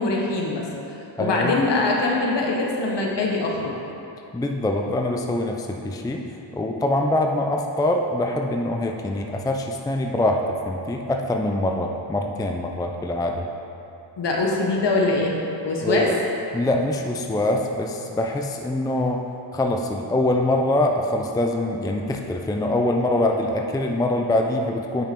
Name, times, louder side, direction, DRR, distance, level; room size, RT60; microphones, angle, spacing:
voice 1, 0.0-3.8 14.2-16.1, left 2 dB, 60° left, -1 dB, 1.5 m, -23 dB
voice 2, 1.2-1.6 4.3-6.2 6.5-10.4 10.7-13.5 15.8-16.1 16.5-19.2 19.5-25.1, left 1 dB, 10° left, 2 dB, 0.4 m, -24 dB
8.9 x 5.6 x 4.6 m, 2.7 s
cardioid pair, 90°, 47 cm